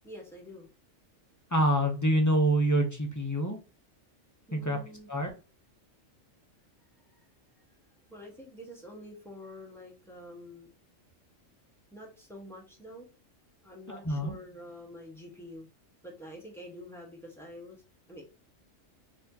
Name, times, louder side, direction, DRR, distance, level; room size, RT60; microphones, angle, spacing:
voice 1, 0.0-0.7 4.5-5.1 7.1-7.2 8.1-10.8 11.9-13.1 13.6-15.7 16.0-17.8 18.1-18.2, left 1 dB, ahead, -2 dB, 1.1 m, -47 dB
voice 2, 1.5-3.6 4.5-4.8 5.1-5.3 13.9-14.3, right 1 dB, 20° left, 2 dB, 0.5 m, -26 dB
4.3 x 2.8 x 2.7 m, 0.33 s
omnidirectional pair, 1.3 m